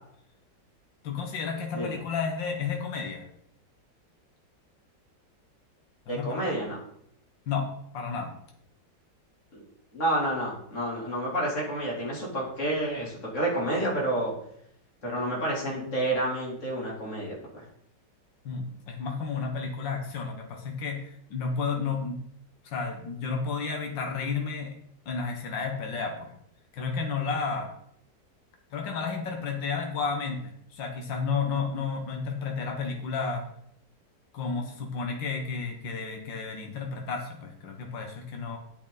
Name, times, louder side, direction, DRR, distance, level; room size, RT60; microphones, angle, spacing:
voice 1, 1.0-3.2 6.1-6.4 7.5-8.3 18.5-22.2 22.6-24.7 25.1-26.3 26.7-27.7 28.7-33.4 34.3-38.6, left 5 dB, 80° left, 2 dB, 2.0 m, -32 dB
voice 2, 6.1-6.8 9.5-9.6 9.9-14.3 15.0-17.6, right 1 dB, 40° left, -4 dB, 3.7 m, -29 dB
9.4 x 8.8 x 4.1 m, 0.71 s
omnidirectional pair, 2.0 m